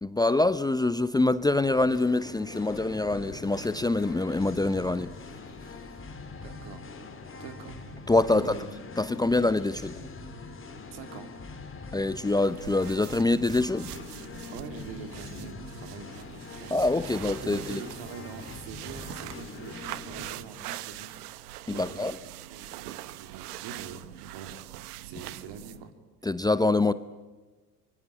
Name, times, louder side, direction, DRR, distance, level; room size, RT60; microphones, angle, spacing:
voice 1, 0.0-5.1 8.1-8.5 9.0-9.9 11.9-13.9 16.7-17.8 21.7-22.2 26.2-26.9, left 2 dB, 10° left, 0.7 m, -25 dB
Singing, 1.4-20.6, left 3 dB, 25° left, 3.9 m, -43 dB
voice 2, 6.2-6.9 7.4-7.8 8.2-8.7 10.9-11.3 14.5-16.8 17.4-21.1 21.7-25.9, right 6 dB, 65° right, 3.6 m, -44 dB
sound 1, 12.3-25.9, right 15 dB, 80° right, 1.1 m, -43 dB
25.5 x 23.5 x 8.9 m
hypercardioid pair, 75°, 46 cm